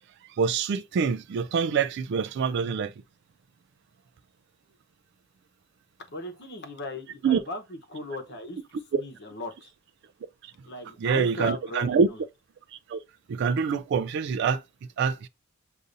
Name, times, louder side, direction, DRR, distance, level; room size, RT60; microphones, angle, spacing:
voice 1, 0.4-2.9 7.2-7.4 8.9-9.0 11.0-12.1 12.9-13.0 13.3-14.6 15.0-15.3, right 6 dB, 55° right, 0.3 m, -25 dB
voice 2, 6.1-9.7 10.7-12.2, left 1 dB, 55° left, 0.9 m, -37 dB
6.5 x 2.6 x 2.6 m
head